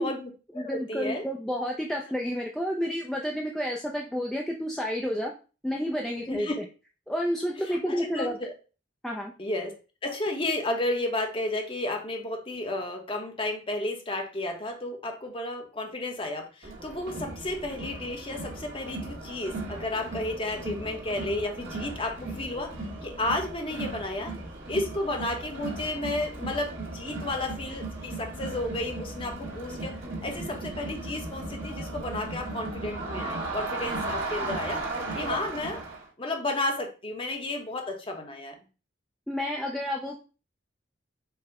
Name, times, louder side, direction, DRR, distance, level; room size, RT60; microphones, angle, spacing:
voice 1, 0.0-1.2 6.3-6.6 7.7-8.5 9.4-9.7 10.0-22.7 23.0-24.3 24.7-30.0 30.2-34.9 35.1-35.8 36.2-38.6, left 2 dB, 25° left, 3 dB, 0.8 m, -32 dB
voice 2, 0.6-5.3 5.6-6.5 7.1-8.4 9.0-9.3 39.3-40.2, equal, ahead, -1 dB, 0.3 m, -30 dB
Crowd, 16.6-36.1, right 2 dB, 65° right, 1.5 m, -36 dB
4.7 x 2.1 x 4.7 m, 0.34 s
head